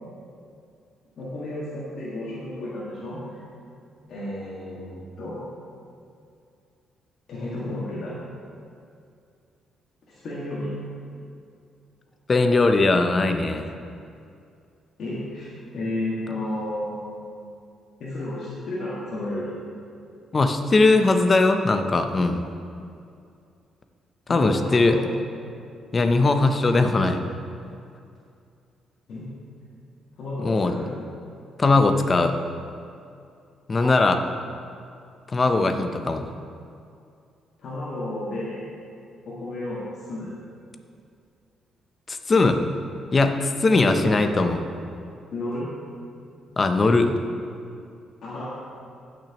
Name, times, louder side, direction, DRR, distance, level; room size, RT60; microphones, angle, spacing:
voice 1, 1.2-3.2 4.1-5.4 7.3-8.1 10.1-10.7 15.0-17.4 18.0-19.5 24.3-25.1 29.1-29.3 30.2-30.9 33.8-33.9 35.5-35.7 37.6-38.6 39.3-40.3 43.9-44.4 45.3-45.7 48.2-48.5, left 1 dB, 65° left, -9 dB, 1.9 m, -32 dB
voice 2, 12.3-13.7 20.3-22.4 24.3-25.0 25.9-27.2 30.4-30.8 31.6-32.3 33.7-34.2 35.3-36.2 42.1-42.6 43.1-44.6 46.6-47.1, left 3 dB, 35° left, 7 dB, 0.7 m, -20 dB
15.5 x 6.1 x 3.0 m, 2.4 s
cardioid pair, 90°, 0 cm